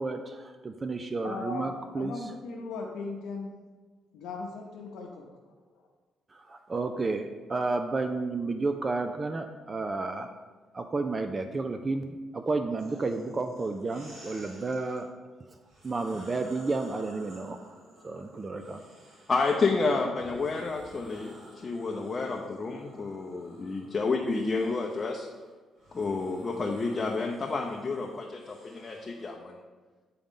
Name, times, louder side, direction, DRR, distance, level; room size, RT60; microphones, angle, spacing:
voice 1, 0.0-2.2 6.3-10.3 10.7-15.1 15.8-17.6 18.0-18.8, right 3 dB, 30° right, 7 dB, 0.4 m, -31 dB
voice 2, 1.2-1.7 2.0-3.5 4.1-5.3, left 4 dB, 85° left, -1 dB, 0.7 m, -37 dB
sound 1, 12.8-15.0 15.6-19.7 20.2-29.3, equal, 80° right, 2.1 m, -53 dB
voice 3, 19.3-25.3 25.9-29.6, left 3 dB, 35° left, 0 dB, 0.6 m, -30 dB
8.3 x 3.9 x 3.7 m, 1.3 s
cardioid pair, 90°, 0 cm